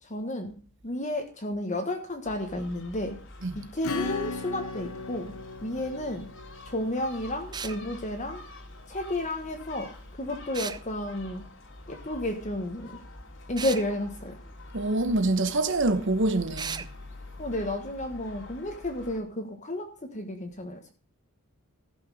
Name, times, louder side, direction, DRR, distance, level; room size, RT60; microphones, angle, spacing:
voice 1, 0.0-0.6 0.8-3.2 3.5-6.3 6.6-8.4 8.9-11.5 11.9-13.0 13.5-14.4 17.4-20.9, left 1 dB, 35° left, 1.4 m, -32 dB
Gull seagull, 2.2-19.2, left 2 dB, 60° left, 2.4 m, -46 dB
Acoustic guitar / Strum, 3.8-8.1, left 4 dB, 85° left, 1.1 m, -37 dB
sound 1, 7.5-7.8 10.5-10.8 13.6-13.9 16.6-16.9, right 6 dB, 20° right, 0.5 m, -35 dB
voice 2, 14.7-16.9, right 2 dB, 55° right, 1.2 m, -25 dB
14.5 x 6.2 x 6.4 m
head